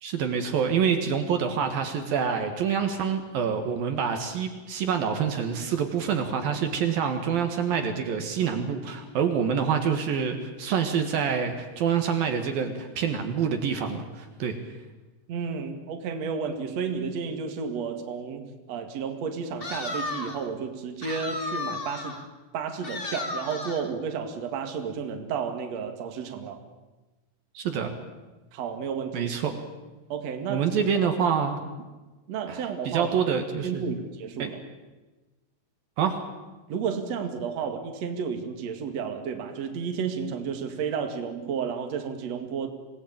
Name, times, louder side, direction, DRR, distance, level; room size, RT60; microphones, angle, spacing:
voice 1, 0.0-14.6 27.5-28.0 29.1-29.5 30.5-31.6 32.5-32.6 32.8-34.0 34.4-34.5 36.0-36.2, right 7 dB, 65° right, 6 dB, 3.3 m, -26 dB
voice 2, 15.3-22.2 22.5-26.6 28.5-29.3 30.1-30.7 32.3-33.1 33.6-34.6 36.7-42.7, right 6 dB, 45° right, 5 dB, 2.9 m, -32 dB
sound 1, 19.6-20.5 21.0-22.3 22.8-23.9, left 2 dB, 45° left, 0.7 m, -34 dB
26.5 x 19.0 x 8.9 m, 1.2 s
omnidirectional pair, 4.7 m